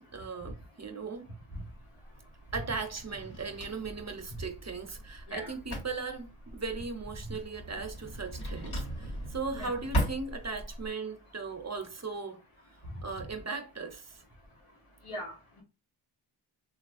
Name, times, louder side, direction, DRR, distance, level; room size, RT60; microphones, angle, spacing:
voice 1, 0.1-1.3 2.5-12.4 13.0-14.2, right 4 dB, 35° right, 0.7 m, -38 dB
Drawer open or close, 1.5-10.9, right 1 dB, 50° left, 1.3 m, -39 dB
voice 2, 15.0-15.6, equal, 90° left, 1.1 m, -40 dB
3.3 x 2.3 x 2.5 m
cardioid pair, 50°, 50 cm